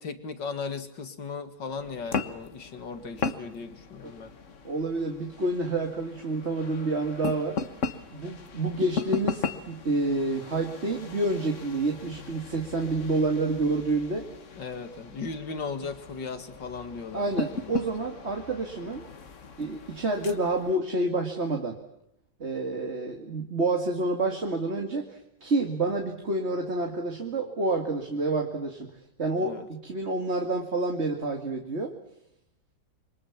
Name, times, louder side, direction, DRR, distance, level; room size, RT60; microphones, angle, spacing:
voice 1, 0.0-4.3 14.6-17.8 29.4-29.7, left 5 dB, 80° left, 8 dB, 2.7 m, -37 dB
sound 1, 1.7-20.8, left 5 dB, 45° left, 1.6 m, -37 dB
voice 2, 4.6-7.6 8.1-14.3 17.1-19.1 19.6-21.8 22.4-28.9 29.2-31.9, right 2 dB, 35° right, 2 dB, 2.4 m, -28 dB
27.0 x 25.0 x 7.3 m, 0.81 s
omnidirectional pair, 1.9 m